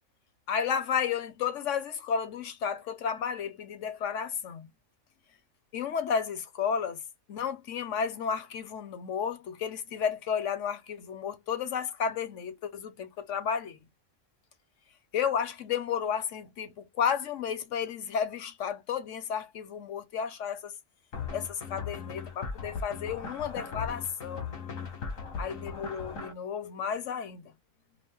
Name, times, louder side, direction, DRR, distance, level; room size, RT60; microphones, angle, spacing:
voice 1, 0.5-4.7 5.7-7.0 7.3-13.8 15.1-20.8 21.3-24.5 25.4-27.5, left 7 dB, 70° left, 1.1 m, -32 dB
sound 1, 21.1-26.3, left 5 dB, 90° left, 1.6 m, -38 dB
5.1 x 2.0 x 3.5 m
omnidirectional pair, 1.3 m